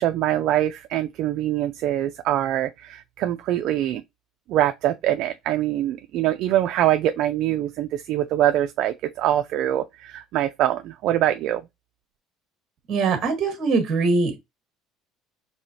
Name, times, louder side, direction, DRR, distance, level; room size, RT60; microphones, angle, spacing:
voice 1, 0.0-4.0 4.5-11.6, right 12 dB, 50° right, 0.3 m, -24 dB
voice 2, 12.9-14.4, right 4 dB, 35° right, 1.3 m, -22 dB
4.7 x 2.7 x 2.7 m
cardioid pair, 165°, 0 cm